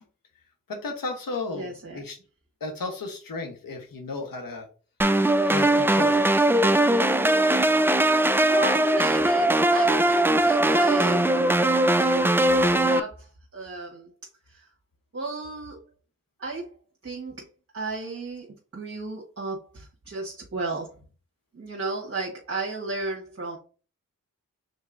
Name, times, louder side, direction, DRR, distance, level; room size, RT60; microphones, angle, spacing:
voice 1, 0.7-1.7 1.9-2.2 2.6-4.6 5.4-6.2, left 3 dB, 75° left, 1.0 m, -33 dB
voice 2, 1.5-2.0 8.5-11.5 11.9-14.1 14.5-14.7 15.1-15.8 16.4-16.7 17.0-17.5 17.7-21.0 21.5-23.6, right 3 dB, 45° right, 1.3 m, -34 dB
sound 1, 5.0-13.0, right 1 dB, 5° right, 0.3 m, -20 dB
5.3 x 3.8 x 2.5 m
cardioid pair, 50°, 34 cm